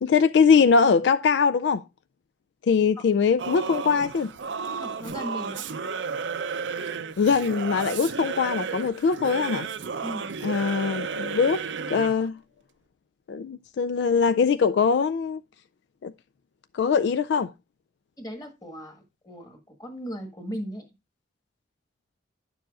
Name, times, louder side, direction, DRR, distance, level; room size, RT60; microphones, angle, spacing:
voice 1, 0.0-1.8 2.7-4.3 7.2-9.7 10.4-11.6 11.9-12.3 13.3-15.4 16.0-16.1 16.7-17.5, left 5 dB, 65° left, 0.3 m, -22 dB
Singing / Musical instrument, 3.4-12.3, right 5 dB, 80° right, 0.6 m, -33 dB
voice 2, 4.8-5.7 10.0-10.3 18.2-20.9, equal, 20° left, 1.6 m, -37 dB
10.0 x 7.0 x 2.4 m
head